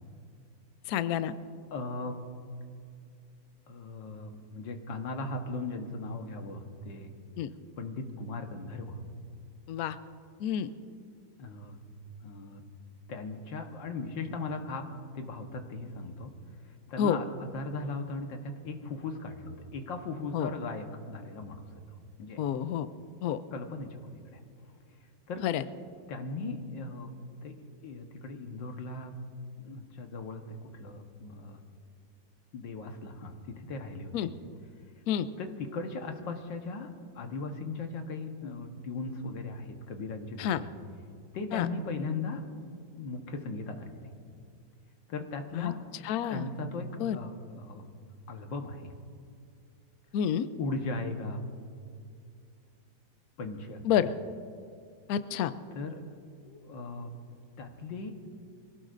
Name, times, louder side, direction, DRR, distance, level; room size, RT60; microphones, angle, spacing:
voice 1, 0.9-1.3 7.4-7.5 9.7-10.0 10.4-10.7 17.0-17.2 20.3-20.5 22.4-22.9 23.2-23.4 25.4-25.6 34.1-34.3 35.1-35.3 40.4-40.6 41.5-41.7 45.5-45.7 46.0-46.5 47.0-47.2 50.1-50.5 53.8-54.1 55.1-55.5, left 9 dB, 70° left, 12 dB, 0.9 m, -28 dB
voice 2, 1.7-2.2 3.7-7.1 7.8-9.0 11.4-11.8 12.2-12.6 13.1-16.3 16.9-21.6 22.2-22.4 23.5-24.4 25.3-25.4 26.1-27.1 27.4-27.6 27.8-29.1 29.6-31.6 32.5-34.3 35.4-40.7 41.3-42.4 42.9-44.1 45.1-45.8 46.3-47.9 48.3-48.9 50.6-51.4 53.4-53.8 55.7-56.0 56.4-57.1 57.6-58.1, left 3 dB, 85° left, 4 dB, 1.9 m, -38 dB
24.0 x 17.0 x 2.6 m, 2.4 s
omnidirectional pair, 2.0 m